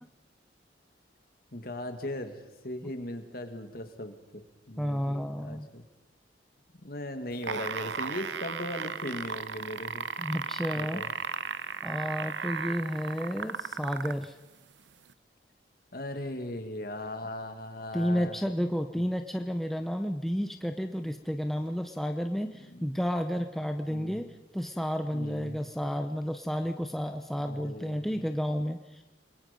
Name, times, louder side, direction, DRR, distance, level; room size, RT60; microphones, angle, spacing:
voice 1, 1.5-2.3 2.6-5.8 6.8-10.1 10.7-11.1 15.9-18.4 18.9-19.0 22.6-22.9 23.9-24.2 25.1-25.6 27.4-28.2, left 1 dB, 55° left, 6 dB, 2.3 m, -38 dB
voice 2, 4.8-5.7 10.2-11.0 11.8-14.4 17.9-24.2 24.5-29.0, equal, ahead, 5 dB, 0.8 m, -31 dB
sound 1, 7.3-14.3 15.1-15.2, right 6 dB, 80° right, 0.8 m, -35 dB
29.5 x 21.5 x 5.4 m, 1.0 s
head